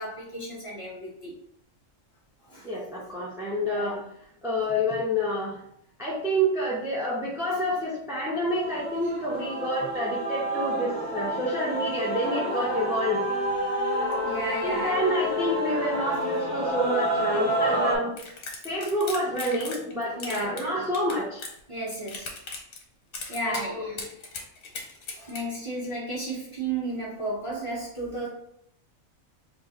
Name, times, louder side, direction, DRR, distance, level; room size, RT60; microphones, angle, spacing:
voice 1, 0.0-1.3 2.4-2.7 3.6-4.0 14.2-15.0 20.1-20.6 21.7-22.3 23.3-24.0 25.2-28.3, right 2 dB, 25° left, -6 dB, 1.2 m, -33 dB
voice 2, 2.6-4.0 4.4-5.6 6.0-13.4 14.6-18.1 18.6-21.4 23.5-24.0, equal, 5° right, -6 dB, 0.5 m, -28 dB
Male singing / Female singing / Musical instrument, 8.5-18.0, equal, 60° left, 1.1 m, -29 dB
sound 1, 18.2-19.9 20.2-21.6 21.9-22.8 23.1-23.6 24.0-25.4, left 3 dB, 90° left, 1.3 m, -37 dB
3.0 x 2.5 x 3.9 m, 0.73 s
omnidirectional pair, 1.4 m